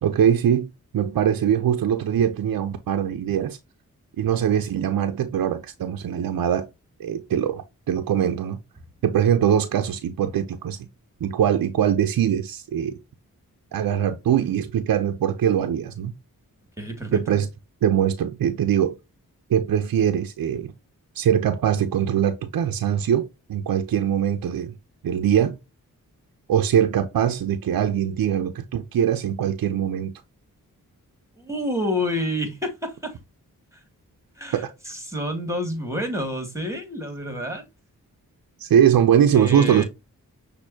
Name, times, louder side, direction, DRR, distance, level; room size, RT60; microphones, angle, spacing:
voice 1, 0.0-3.6 4.2-6.6 7.0-7.6 7.9-8.6 9.0-10.8 11.2-12.9 13.7-16.1 17.1-17.5 17.8-19.0 19.5-20.7 21.1-24.7 25.0-25.6 26.5-30.1 34.5-34.7 38.6-39.8, right 9 dB, 70° right, 0.7 m, -22 dB
voice 2, 16.8-17.4 31.4-33.1 34.4-37.7 39.3-39.8, left 1 dB, 10° right, 2.4 m, -29 dB
6.1 x 2.8 x 2.7 m
cardioid pair, 45°, 35 cm